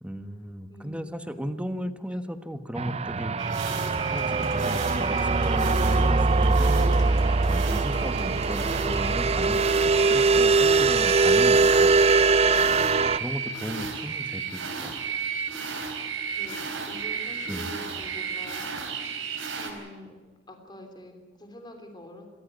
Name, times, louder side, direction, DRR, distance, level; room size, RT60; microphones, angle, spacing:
voice 1, 0.0-3.5 3.8-6.7 7.5-11.9 12.9-15.2 17.5-17.7, equal, 5° right, 9 dB, 1.3 m, -36 dB
voice 2, 0.7-1.1 2.1-2.4 16.3-19.1 19.5-20.2 20.5-22.3, left 1 dB, 25° left, 5 dB, 3.2 m, -46 dB
sound 1, 2.8-13.2, right 3 dB, 35° right, 0.6 m, -22 dB
sound 2, 3.4-19.7, right 5 dB, 80° right, 4.3 m, -34 dB
sound 3, 3.7-11.6, left 2 dB, 75° left, 3.9 m, -47 dB
27.0 x 14.5 x 9.4 m, 1.5 s
head